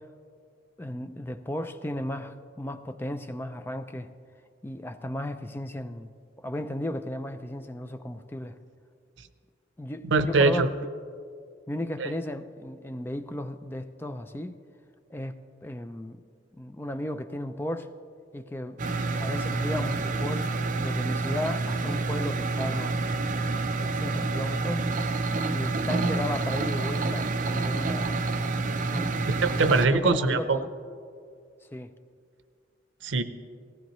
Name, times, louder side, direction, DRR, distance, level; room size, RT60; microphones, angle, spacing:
voice 1, 0.8-4.1 4.6-6.1 6.4-8.6 9.8-10.6 11.7-14.6 15.1-16.2 16.6-17.9 18.3-18.8 19.2-20.5 20.8-23.0 23.8-24.9 25.5-28.1 28.9-29.2 29.9-30.7 31.7-31.9, left 1 dB, 10° left, 9 dB, 0.4 m, -35 dB
voice 2, 10.0-10.7 12.0-12.1 29.4-30.6 33.0-33.2, right 3 dB, 85° right, 11 dB, 0.7 m, -22 dB
sound 1, 18.8-29.9, right 3 dB, 45° right, 0.6 m, -28 dB
18.0 x 15.5 x 3.1 m, 2.3 s
head